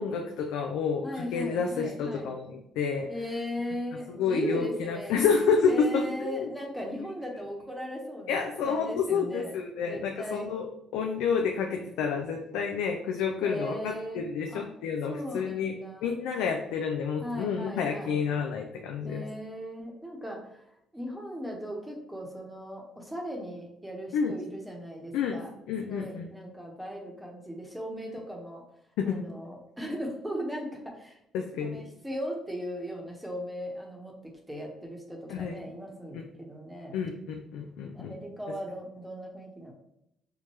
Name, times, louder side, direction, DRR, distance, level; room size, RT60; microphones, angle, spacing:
voice 1, 0.0-3.1 4.2-6.5 8.3-15.7 16.0-19.3 24.1-24.3 25.1-25.4 25.7-26.3 29.0-29.2 31.3-31.8 35.3-35.5 36.1-36.2 36.9-38.1, left 6 dB, 85° left, 2 dB, 0.3 m, -29 dB
voice 2, 1.0-2.3 3.1-5.2 5.7-10.5 13.4-14.2 14.5-14.6 15.1-16.2 17.2-18.2 19.0-20.6 20.9-25.5 25.8-28.6 29.1-31.2 31.6-37.0 37.9-39.7, equal, 5° right, 0 dB, 1.0 m, -38 dB
4.5 x 2.1 x 3.1 m, 0.80 s
supercardioid pair, 80°, 0 cm